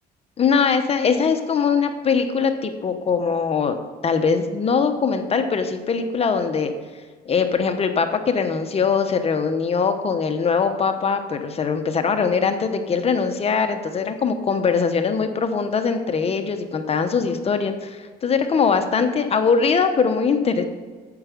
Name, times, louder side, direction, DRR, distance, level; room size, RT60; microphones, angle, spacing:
voice 1, 0.4-3.8 4.0-6.7 7.2-20.6, left 5 dB, 35° left, 7 dB, 0.9 m, -21 dB
9.6 x 7.7 x 5.2 m, 1.4 s
cardioid pair, 110°, 17 cm